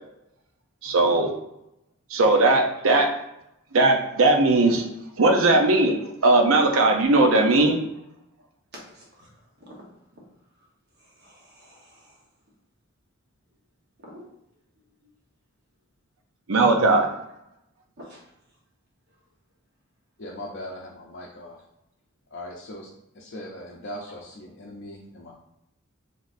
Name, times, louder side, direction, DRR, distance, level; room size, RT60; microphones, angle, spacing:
voice 1, 0.8-1.3 2.1-3.1 3.7-4.8 5.2-7.8 16.5-17.1, right 2 dB, 75° right, 3 dB, 0.6 m, -19 dB
voice 2, 8.7-9.3 9.7-9.8 11.0-12.2 14.1-14.2 18.0-18.2, equal, 50° right, -3 dB, 1.2 m, -47 dB
voice 3, 20.2-21.6 22.3-22.9 23.1-25.3, left 1 dB, 55° left, -3 dB, 0.6 m, -39 dB
4.0 x 3.4 x 2.6 m, 0.85 s
head